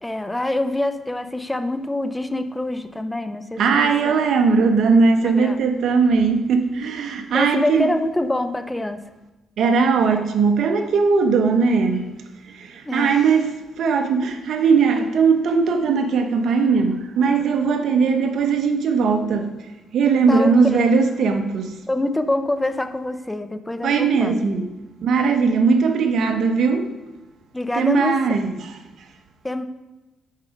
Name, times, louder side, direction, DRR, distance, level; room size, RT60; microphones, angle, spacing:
voice 1, 0.0-4.1 4.9-5.6 7.3-9.0 12.9-13.2 20.3-20.9 21.9-24.3 27.5-28.2 29.4-29.6, left 1 dB, 10° left, 0.5 m, -25 dB
voice 2, 3.6-7.9 9.6-12.1 12.5-19.5 19.9-21.8 23.8-24.7 25.0-26.9 27.7-28.7, right 5 dB, 70° right, 0.8 m, -19 dB
6.4 x 5.2 x 5.1 m
cardioid pair, 90°, 0 cm